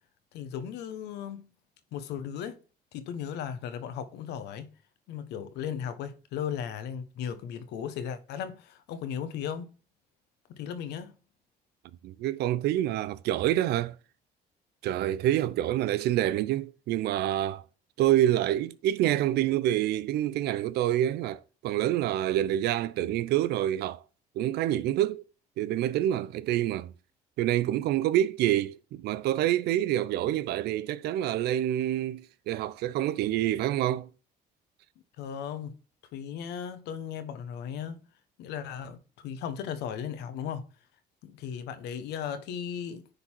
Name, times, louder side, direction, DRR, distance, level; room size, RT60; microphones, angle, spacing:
voice 1, 0.3-1.5 1.9-2.6 2.9-4.7 5.1-9.7 10.5-11.1 35.2-35.7 36.1-38.0 38.4-40.6 41.2-43.1, left 8 dB, 85° left, 1.1 m, -36 dB
voice 2, 12.0-13.9 14.8-17.6 18.0-24.0 24.4-25.2 25.6-26.9 27.4-34.1, right 13 dB, 75° right, 0.5 m, -27 dB
9.9 x 3.9 x 4.5 m
cardioid pair, 110°, 17 cm